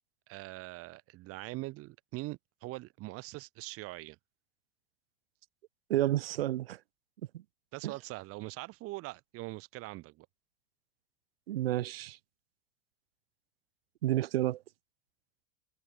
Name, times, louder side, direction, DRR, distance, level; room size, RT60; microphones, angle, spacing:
voice 1, 0.3-4.2 7.7-10.3, right 20 dB, 50° right, 3.3 m, -42 dB
voice 2, 5.9-6.8 7.3-7.4 7.8-7.9 11.5-12.2 14.0-14.6, right 14 dB, 70° right, 1.8 m, -30 dB
hypercardioid pair, 90°, 30 cm